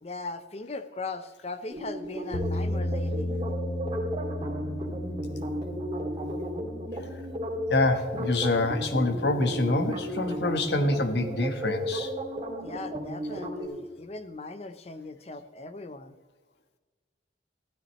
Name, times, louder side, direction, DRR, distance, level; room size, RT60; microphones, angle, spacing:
voice 1, 0.0-3.3 12.6-16.1, left 3 dB, 35° left, 10 dB, 0.7 m, -39 dB
sound 1, 1.7-13.7, equal, 30° right, 2.2 m, -34 dB
sound 2, 2.3-10.4, left 1 dB, 85° left, 1.1 m, -35 dB
voice 2, 7.7-12.1, left 2 dB, 65° left, 7 dB, 1.2 m, -26 dB
15.5 x 12.5 x 3.1 m, 1.3 s
head